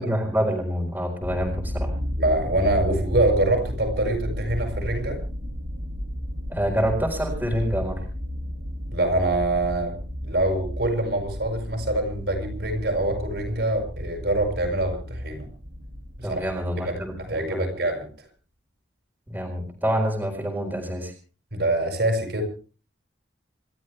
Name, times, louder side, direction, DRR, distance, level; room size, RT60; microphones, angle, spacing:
voice 1, 0.0-2.0 6.5-8.0 16.2-17.7 19.3-21.1, equal, 10° right, 1 dB, 4.3 m, -27 dB
sound 1, 1.2-17.6, equal, 80° right, 2.9 m, -33 dB
voice 2, 2.2-5.2 8.9-9.9 10.2-15.5 16.2-16.5 16.8-18.1 21.5-22.4, right 1 dB, 60° right, 4 dB, 6.6 m, -25 dB
27.5 x 13.5 x 3.4 m, 0.38 s
head